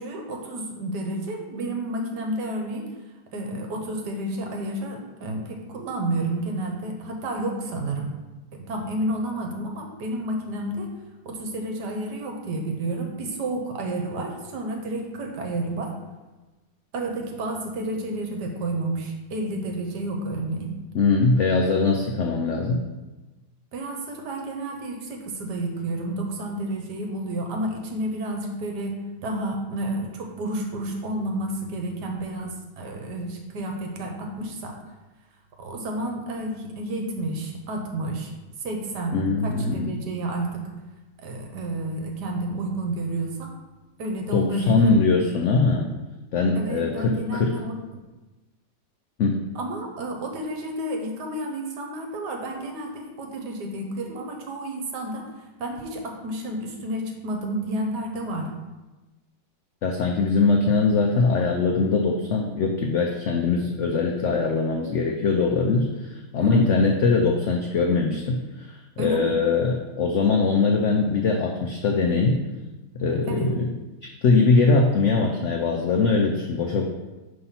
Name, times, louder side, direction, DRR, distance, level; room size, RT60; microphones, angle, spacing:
voice 1, 0.0-2.9 3.3-8.1 8.5-10.9 11.2-15.9 16.9-20.7 23.7-34.7 35.6-38.3 38.6-40.6 41.2-43.5 44.0-44.9 46.6-47.7 49.5-55.2 55.6-58.5 66.4-66.7 69.0-69.3 73.3-73.5, right 1 dB, 70° right, 2 dB, 1.5 m, -30 dB
voice 2, 20.9-22.8 39.1-40.0 44.3-45.9 46.3-47.6 49.2-49.4 59.8-72.4 72.9-73.7 74.0-76.8, left 4 dB, 80° left, 2 dB, 0.6 m, -22 dB
5.4 x 3.4 x 5.6 m, 1.1 s
omnidirectional pair, 1.9 m